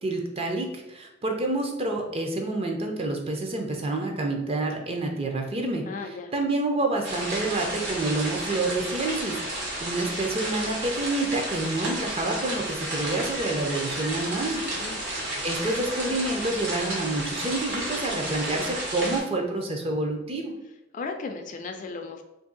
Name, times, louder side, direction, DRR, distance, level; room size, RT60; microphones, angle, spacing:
voice 1, 0.0-5.8 6.3-14.6 15.4-20.5, right 2 dB, 30° right, 2 dB, 0.5 m, -28 dB
voice 2, 5.9-6.3 14.6-15.1 20.9-22.2, left 4 dB, 40° left, 5 dB, 0.3 m, -36 dB
sound 1, 7.0-19.2, right 1 dB, 65° right, 1.1 m, -32 dB
2.6 x 2.6 x 3.8 m, 0.94 s
head